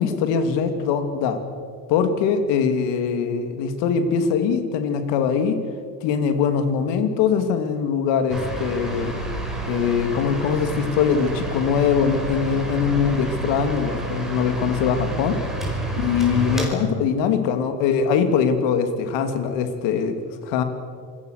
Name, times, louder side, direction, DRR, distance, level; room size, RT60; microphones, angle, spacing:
voice 1, 0.0-1.4 1.9-5.6 6.0-9.1 9.7-15.4 15.9-20.1 20.4-20.6, left 6 dB, 70° left, 7 dB, 3.0 m, -22 dB
sound 1, 8.3-16.7, right 2 dB, ahead, 5.0 m, -29 dB
27.0 x 21.5 x 6.7 m, 2.2 s
cardioid pair, 125°, 44 cm